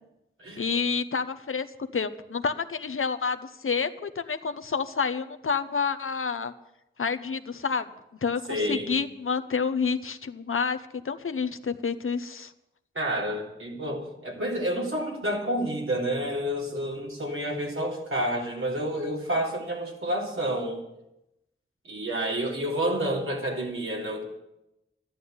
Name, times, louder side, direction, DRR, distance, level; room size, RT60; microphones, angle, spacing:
voice 1, 0.6-1.7 1.9-6.5 7.0-7.9 8.2-10.8 11.0-12.5, left 5 dB, 85° left, 10 dB, 0.9 m, -29 dB
voice 2, 8.5-8.9 12.9-20.8 21.8-24.2, right 1 dB, 80° right, -2 dB, 3.8 m, -29 dB
13.5 x 11.5 x 8.1 m, 0.88 s
wide cardioid pair, 55°, 21 cm